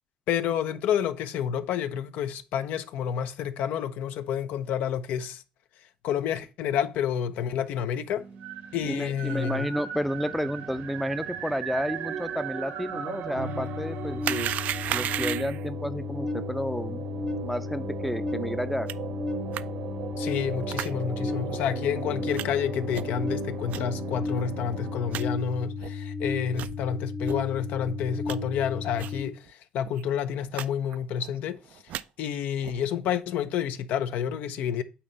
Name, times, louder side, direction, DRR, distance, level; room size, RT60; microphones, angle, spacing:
voice 1, 0.3-5.4 6.0-8.2 8.7-9.7 20.2-34.8, left 8 dB, 75° left, 0.6 m, -29 dB
sound 1, 8.2-25.3, right 7 dB, 85° right, 1.3 m, -38 dB
voice 2, 8.8-14.5 14.9-17.0 17.4-18.9, equal, ahead, 0.5 m, -31 dB
sound 2, 13.4-29.2, left 4 dB, 40° left, 1.2 m, -34 dB
sound 3, 14.2-15.7 18.9-19.0 19.5-19.6 20.7-20.9 21.5-21.6 22.3-22.5 22.9-23.2 23.7-23.8 24.4-24.5 24.7-24.8 25.1-25.2 25.8-25.9 26.5-26.7 27.2-27.4 27.8-28.4 29.0-29.2 29.5-29.6 29.8-30.0 30.5-30.7 30.9-31.3 31.7-32.0 32.6-32.9, right 12 dB, 65° right, 0.3 m, -33 dB
8.6 x 2.9 x 5.2 m
cardioid pair, 100°, 3 cm